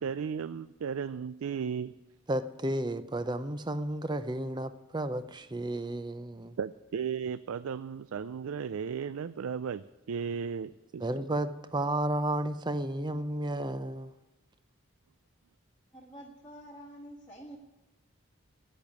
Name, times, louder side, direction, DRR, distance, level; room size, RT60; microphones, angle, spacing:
voice 1, 0.0-1.9 6.6-11.0, right 7 dB, 90° right, 0.4 m, -35 dB
voice 2, 2.3-6.6 11.0-14.1, right 1 dB, 20° right, 0.6 m, -32 dB
voice 3, 15.9-17.6, right 1 dB, 10° left, 1.5 m, -48 dB
10.5 x 8.8 x 9.5 m
head